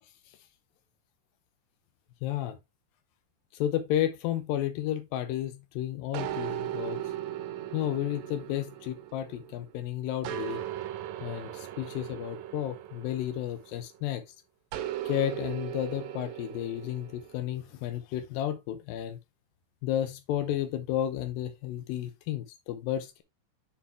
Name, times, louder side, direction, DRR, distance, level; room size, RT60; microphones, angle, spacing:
voice 1, 2.2-2.6 3.5-7.0 7.7-10.6 11.2-14.2 15.1-19.2 19.8-23.2, left 12 dB, 90° left, 2.5 m, -32 dB
sound 1, 6.1-9.7 10.2-14.0 14.7-17.4, right 12 dB, 75° right, 1.8 m, -38 dB
7.5 x 4.3 x 3.4 m
omnidirectional pair, 3.9 m